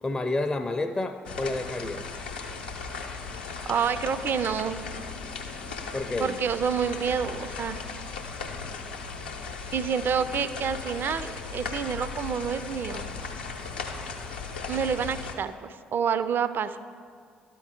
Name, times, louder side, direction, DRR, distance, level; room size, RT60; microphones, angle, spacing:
voice 1, 0.0-2.1 5.9-6.4, left 2 dB, 20° left, 5 dB, 0.4 m, -29 dB
sound 1, 1.3-15.4, left 4 dB, 80° left, 0.6 m, -37 dB
voice 2, 3.7-4.8 6.2-7.8 9.7-13.0 14.7-16.8, right 7 dB, 45° right, 13 dB, 0.4 m, -28 dB
12.5 x 4.5 x 3.6 m, 2.2 s
figure-of-eight pair, 45°, 5 cm